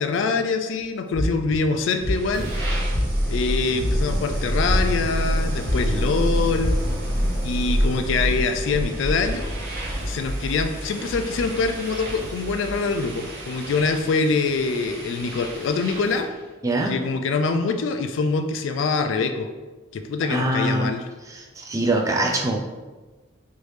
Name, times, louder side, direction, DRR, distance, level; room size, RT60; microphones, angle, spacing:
voice 1, 0.0-2.5 3.3-6.8 7.4-9.5 10.0-16.3 16.9-19.5 19.9-21.0, left 4 dB, 65° left, 6 dB, 0.3 m, -24 dB
sound 1, 1.1-1.6 2.0-2.4 2.9-3.3 3.8-4.2 4.6-5.3 5.6-6.0 6.6-6.7, left 1 dB, 30° left, 0.7 m, -26 dB
sound 2, 1.7-16.3, equal, 55° right, 0.7 m, -27 dB
voice 2, 16.6-17.0 20.3-20.9 21.3-22.6, right 1 dB, 15° right, 1 dB, 0.3 m, -23 dB
3.2 x 2.6 x 3.2 m, 1.2 s
head